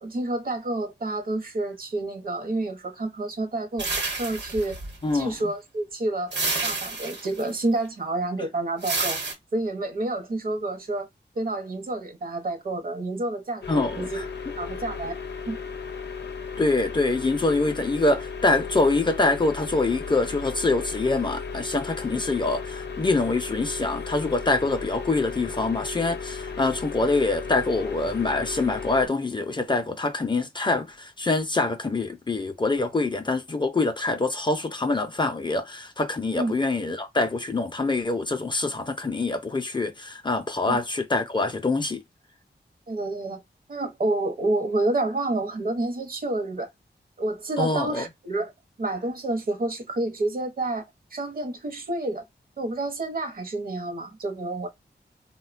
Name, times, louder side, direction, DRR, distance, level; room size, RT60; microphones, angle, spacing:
voice 1, 0.0-3.9 4.2-4.8 5.1-6.3 6.6-9.2 9.5-11.1 11.4-14.2 14.6-15.1 15.5-15.6 36.3-36.6 40.7-40.8 42.9-43.4 43.7-46.7 47.2-48.5 48.8-50.8 51.1-52.2 52.6-54.7, right 2 dB, 55° right, 0.7 m, -29 dB
sound 1, 3.8-5.2 6.3-7.5 8.8-9.3, right 3 dB, 80° right, 1.0 m, -29 dB
voice 2, 5.0-5.5 13.7-14.2 16.6-42.0 47.6-48.1, left 3 dB, 25° left, 0.4 m, -25 dB
sound 2, 13.6-29.1, left 5 dB, 75° left, 0.5 m, -35 dB
3.5 x 2.1 x 2.4 m
wide cardioid pair, 125°, 18 cm